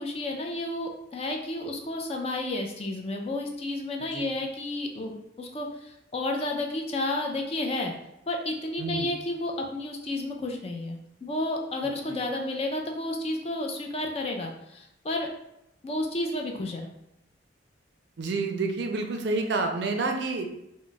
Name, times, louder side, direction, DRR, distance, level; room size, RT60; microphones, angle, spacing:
voice 1, 0.0-7.9 8.3-15.3 15.8-16.9, left 2 dB, 30° left, 2 dB, 0.3 m, -31 dB
voice 2, 8.8-9.1 12.1-12.2 18.2-20.5, right 3 dB, 65° right, 4 dB, 0.4 m, -29 dB
2.2 x 2.0 x 3.8 m, 0.83 s
head